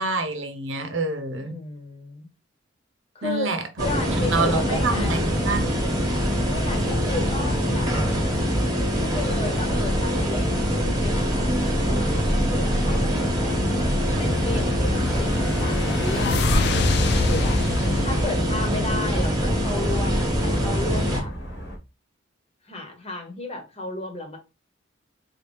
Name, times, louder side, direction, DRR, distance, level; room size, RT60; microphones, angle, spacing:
voice 1, 0.0-1.6 3.2-3.9 4.3-5.9, right 3 dB, 90° right, 0.9 m, -27 dB
voice 2, 1.4-2.3 3.1-3.5 3.8-5.4 6.5-7.9 9.0-13.5 14.2-17.6 18.0-21.3 22.7-24.4, left 2 dB, 35° left, 1.1 m, -33 dB
sound 1, 3.8-21.2, equal, 20° right, 1.2 m, -23 dB
sound 2, 12.1-21.8, equal, 80° left, 1.7 m, -37 dB
sound 3, 14.5-19.5, left 4 dB, 60° left, 0.4 m, -27 dB
3.9 x 2.8 x 3.4 m
head